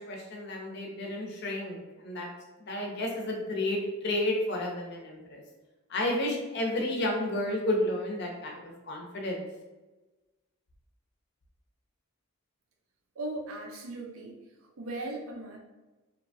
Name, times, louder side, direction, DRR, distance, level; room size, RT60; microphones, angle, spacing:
voice 1, 0.0-2.3 2.6-5.4 5.9-9.4, left 1 dB, 50° left, 0 dB, 0.5 m, -31 dB
voice 2, 13.2-14.4 14.8-15.6, right 2 dB, 70° right, 1 dB, 0.5 m, -37 dB
2.8 x 2.2 x 2.6 m, 1.1 s
head